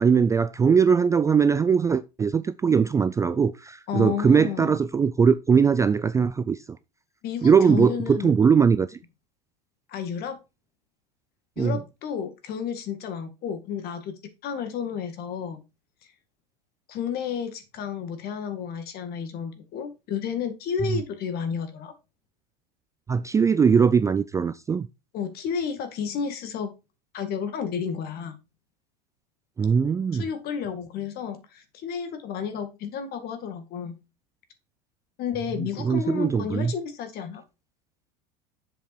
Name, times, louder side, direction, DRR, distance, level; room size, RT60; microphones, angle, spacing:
voice 1, 0.0-6.6 7.4-9.0 11.6-11.8 23.1-24.9 29.6-30.2 35.8-36.7, right 6 dB, 15° right, 0.3 m, -20 dB
voice 2, 3.9-4.8 7.2-8.4 9.9-10.4 11.6-14.1 14.4-15.6 16.9-21.9 25.1-26.7 27.1-28.4 30.1-33.9 35.2-37.4, left 7 dB, 45° left, 1.9 m, -31 dB
7.5 x 5.3 x 4.4 m
hypercardioid pair, 100°, 21 cm